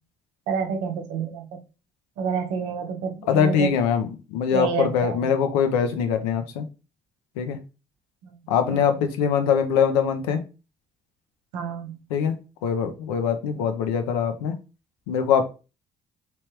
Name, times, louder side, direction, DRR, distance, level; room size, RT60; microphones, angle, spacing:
voice 1, 0.5-1.5 2.2-3.7 4.5-5.2 8.2-8.3 8.7-8.9 11.5-12.0 13.6-13.7, right 6 dB, 80° right, 4 dB, 0.8 m, -29 dB
voice 2, 3.3-6.6 7.4-7.6 8.5-10.4 12.1-12.3 12.6-14.6 15.1-15.4, left 7 dB, 85° left, 8 dB, 0.5 m, -23 dB
3.2 x 3.0 x 3.1 m, 0.31 s
hypercardioid pair, 50°, 19 cm